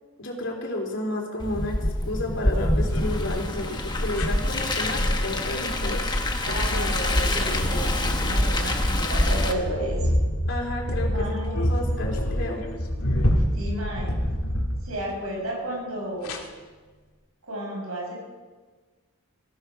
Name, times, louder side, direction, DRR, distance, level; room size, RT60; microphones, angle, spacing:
voice 1, 0.2-1.8 2.0-6.0 10.5-12.6, left 2 dB, 55° left, 0 dB, 3.5 m, -31 dB
Car, 1.4-9.5, left 1 dB, 20° left, 1.2 m, -25 dB
sound 1, 2.3-3.3 4.1-4.6 5.9-6.1 6.5-15.3 16.2-16.4, equal, 80° left, 2.2 m, -28 dB
voice 2, 6.4-10.0 11.1-11.6 13.5-14.1 14.8-16.3 17.4-18.2, right 1 dB, 75° right, -2 dB, 6.0 m, -32 dB
19.0 x 15.0 x 5.0 m, 1.4 s
head